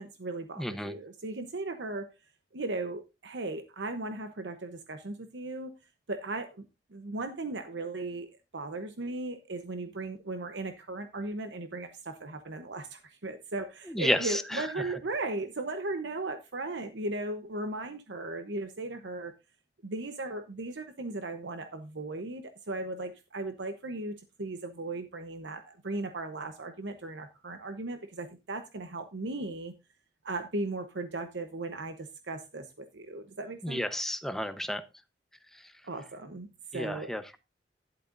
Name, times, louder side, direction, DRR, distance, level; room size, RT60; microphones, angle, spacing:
voice 1, 0.0-2.1 2.5-5.7 6.1-6.6 6.9-8.3 8.5-19.3 19.8-29.7 30.2-33.8 35.8-37.1, right 2 dB, 80° right, 0.9 m, -37 dB
voice 2, 0.6-1.0 13.9-14.9 33.6-34.8 36.7-37.4, equal, ahead, 0.9 m, -31 dB
12.0 x 11.0 x 2.6 m
head